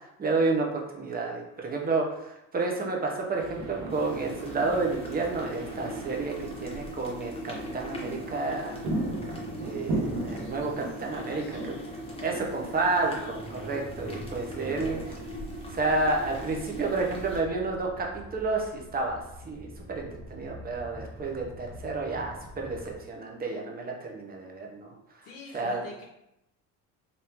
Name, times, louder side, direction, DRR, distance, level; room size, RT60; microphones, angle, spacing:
voice 1, 0.2-6.3 6.6-8.8 9.6-11.4 12.2-15.2 15.7-18.1 18.3-24.9 25.5-25.8, right 3 dB, 25° right, 1 dB, 0.7 m, -30 dB
sound 1, 3.4-15.2, right 2 dB, 65° right, 1.0 m, -38 dB
sound 2, 3.9-17.4, equal, 15° left, 0.9 m, -40 dB
voice 2, 11.1-11.7 25.2-26.0, left 4 dB, 70° left, -2 dB, 0.7 m, -45 dB
sound 3, 12.9-22.9, right 1 dB, ahead, 0.4 m, -45 dB
3.5 x 2.7 x 2.9 m, 0.87 s
supercardioid pair, 100°, 38 cm